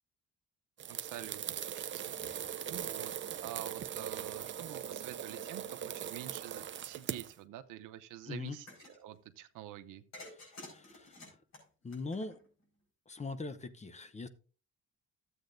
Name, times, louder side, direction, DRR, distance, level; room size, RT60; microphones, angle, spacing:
sound 1, 0.8-7.3, right 9 dB, 40° right, 0.5 m, -40 dB
voice 1, 0.9-3.1 3.4-10.0, right 12 dB, 85° right, 10 dB, 0.8 m, -48 dB
voice 2, 2.2-2.5 8.3-8.6 10.3-11.4 11.8-12.4 13.1-14.3, left 3 dB, 20° left, 12 dB, 0.7 m, -42 dB
sound 2, 8.5-9.0 10.1-12.6, left 2 dB, 60° left, 4.8 m, -51 dB
13.0 x 8.0 x 2.6 m, 0.38 s
cardioid pair, 95°, 30 cm